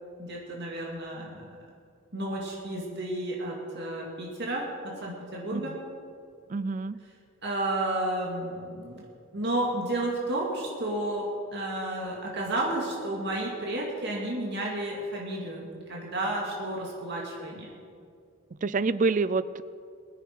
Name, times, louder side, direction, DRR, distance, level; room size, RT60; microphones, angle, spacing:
voice 1, 0.2-1.6 2.1-5.8 7.4-9.1 9.3-17.7, right 1 dB, 55° right, -3 dB, 2.3 m, -32 dB
voice 2, 6.5-7.0 18.5-19.6, right 4 dB, 40° right, 17 dB, 0.4 m, -27 dB
23.5 x 10.0 x 4.7 m, 2.3 s
head